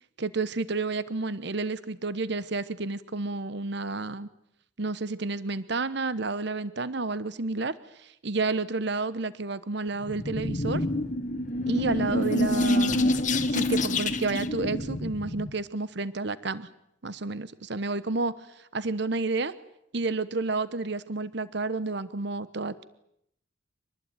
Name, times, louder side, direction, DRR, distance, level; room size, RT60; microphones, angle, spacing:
voice 1, 0.2-4.3 4.8-10.8 11.7-13.1 13.5-16.7 17.0-19.5 19.9-22.8, right 3 dB, 55° right, 15 dB, 1.0 m, -30 dB
sound 1, 10.1-15.5, left 1 dB, 40° left, 1.5 m, -27 dB
25.5 x 20.0 x 9.1 m, 0.76 s
head